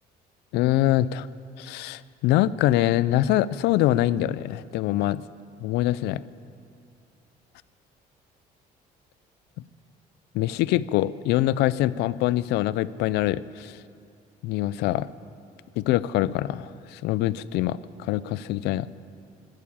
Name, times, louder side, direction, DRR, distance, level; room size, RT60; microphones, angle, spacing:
voice 1, 0.5-1.3 1.6-5.2 5.6-6.2 10.3-13.8 14.4-15.1 15.8-18.9, left 14 dB, 85° left, 18 dB, 0.4 m, -24 dB
12.5 x 9.3 x 8.6 m, 2.4 s
cardioid pair, 110°, 17 cm